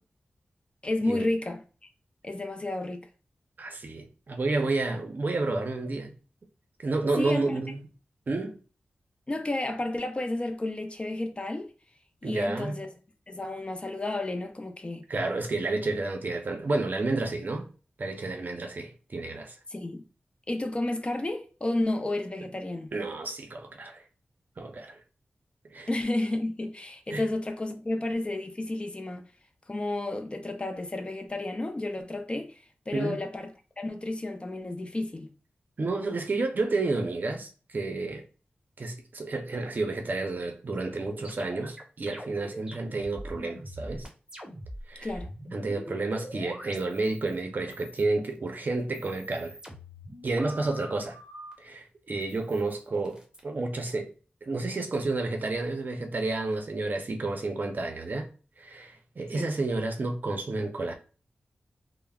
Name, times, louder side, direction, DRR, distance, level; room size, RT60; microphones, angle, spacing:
voice 1, 0.8-1.6 2.2-3.1 7.2-7.4 9.3-11.7 12.2-12.9 13.3-15.1 19.7-20.0 20.5-22.9 25.9-29.3 29.7-33.5 33.8-35.3 45.0-45.3 59.3-59.5, left 2 dB, 30° left, 0.5 m, -31 dB
voice 2, 3.6-6.2 6.8-7.8 8.3-8.6 12.2-12.8 15.1-17.7 18.0-19.5 22.9-24.0 24.6-25.0 25.7-25.9 27.1-27.3 32.9-33.2 35.8-38.2 38.8-44.1 44.9-45.1 45.5-49.6 50.2-51.2 51.6-54.1 54.4-58.3 58.6-60.9, right 3 dB, 55° right, 0.5 m, -30 dB
sound 1, 40.9-44.8 45.1-47.4 47.7-48.4 48.8-51.5 52.2-53.4, equal, 20° right, 0.9 m, -44 dB
3.3 x 2.0 x 2.3 m
cardioid pair, 60°, 4 cm